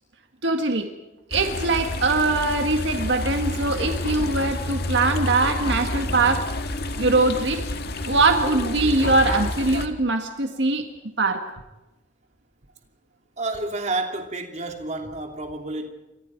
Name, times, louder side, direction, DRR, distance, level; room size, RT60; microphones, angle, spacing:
voice 1, 0.4-0.9 1.3-6.5 7.0-7.6 8.0-10.9 11.2-11.4, right 3 dB, 75° right, 1.8 m, -22 dB
sound 1, 1.3-9.9, left 1 dB, 60° left, 1.7 m, -29 dB
voice 2, 13.4-15.9, right 2 dB, 40° right, 3.1 m, -29 dB
29.5 x 25.5 x 4.6 m
head